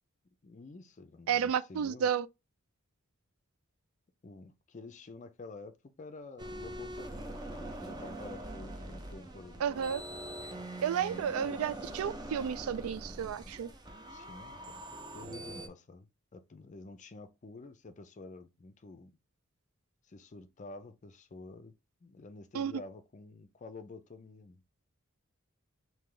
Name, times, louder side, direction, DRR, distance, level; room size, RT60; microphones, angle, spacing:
voice 1, 0.4-2.1 4.2-9.6 10.9-11.6 14.1-14.8 15.1-19.1 20.1-21.7 22.0-24.7, left 3 dB, 35° left, 0.4 m, -49 dB
voice 2, 1.3-2.3 9.6-10.0 10.8-13.7 22.5-22.7, right 8 dB, 85° right, 0.3 m, -32 dB
sound 1, 6.4-15.7, right 1 dB, 20° right, 0.5 m, -43 dB
3.8 x 2.7 x 3.2 m
head